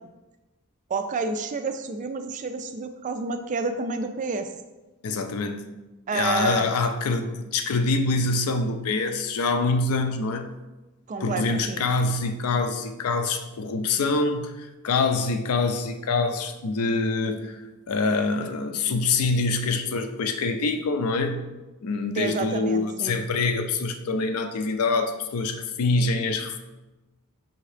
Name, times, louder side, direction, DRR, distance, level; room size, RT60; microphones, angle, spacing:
voice 1, 0.9-4.5 6.1-6.7 11.1-11.8 22.2-23.2, right 4 dB, 35° right, 8 dB, 0.3 m, -29 dB
voice 2, 5.0-5.7 6.1-10.6 11.2-21.5 21.8-26.6, left 3 dB, 75° left, 7 dB, 0.4 m, -25 dB
5.3 x 2.8 x 3.2 m, 1.1 s
head